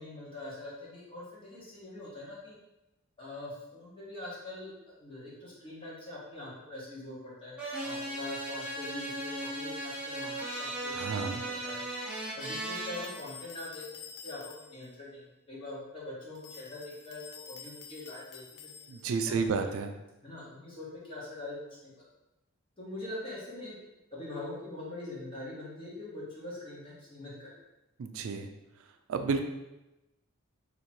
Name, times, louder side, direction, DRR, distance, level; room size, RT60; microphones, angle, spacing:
voice 1, 0.0-2.6 3.2-4.7 5.0-11.8 12.3-19.7 20.2-21.9 22.8-23.8 24.1-27.6, left 2 dB, 25° left, -7 dB, 1.2 m, -43 dB
sound 1, 7.6-13.1, right 1 dB, 5° right, 0.9 m, -37 dB
voice 2, 10.9-11.4 18.9-19.9 28.0-28.5 29.1-29.5, right 4 dB, 70° right, 7 dB, 0.3 m, -31 dB
sound 2, 12.9-14.9 16.3-19.2, left 7 dB, 70° left, 0.4 m, -49 dB
2.8 x 2.8 x 4.4 m, 0.99 s
head